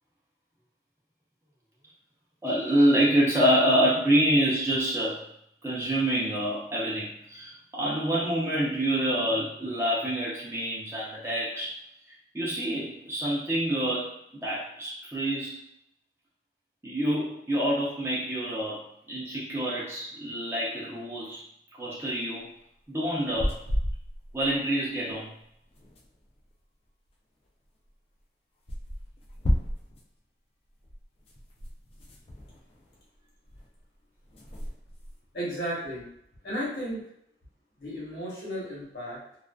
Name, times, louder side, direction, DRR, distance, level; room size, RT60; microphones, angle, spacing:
voice 1, 2.4-5.2 5.6-11.7 12.3-14.1 14.4-15.6 16.8-21.4 21.7-22.5 22.9-23.6 24.3-25.3, right 1 dB, 15° right, -7 dB, 0.6 m, -27 dB
sound 1, 23.1-24.6 24.8-24.9 25.1-25.2 25.4-26.5 27.5-27.6 27.9-28.0 28.7-30.1 30.8-33.2 33.4-33.8 34.2-35.3, equal, 35° left, 0.3 m, -33 dB
voice 2, 35.3-36.1 36.4-37.0 37.8-39.2, equal, 60° left, -6 dB, 1.0 m, -34 dB
2.4 x 2.3 x 2.2 m, 0.73 s
head